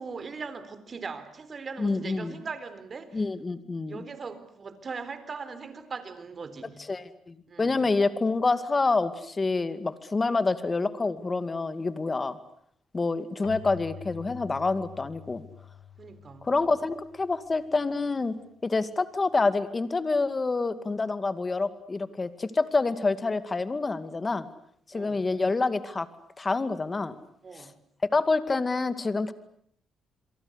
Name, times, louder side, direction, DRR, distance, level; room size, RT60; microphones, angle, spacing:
voice 1, 0.0-3.2 3.9-6.8 7.5-7.8 16.0-16.5 24.9-25.3 27.4-27.7, right 5 dB, 40° right, 13 dB, 4.0 m, -40 dB
voice 2, 1.8-2.4 3.1-4.1 6.9-12.4 12.9-15.4 16.4-18.4 18.6-24.5 24.9-26.1 26.4-27.2 27.6-27.7 28.1-29.3, left 3 dB, 25° left, 12 dB, 2.3 m, -27 dB
Keyboard (musical), 13.4-17.9, left 10 dB, 85° left, 2.0 m, -47 dB
28.5 x 23.0 x 8.1 m, 0.67 s
cardioid pair, 90°, 0 cm